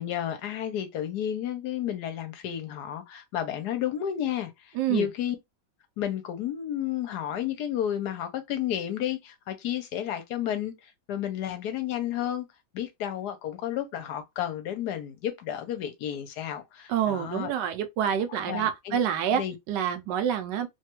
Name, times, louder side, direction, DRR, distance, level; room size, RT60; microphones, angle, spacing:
voice 1, 0.0-5.4 6.0-12.5 12.7-17.5 18.3-19.0 19.3-19.5, left 10 dB, 70° left, 1.1 m, -32 dB
voice 2, 4.7-5.1 16.9-19.4 19.7-20.7, right 9 dB, 80° right, 1.2 m, -27 dB
3.2 x 2.3 x 2.8 m
omnidirectional pair, 1.9 m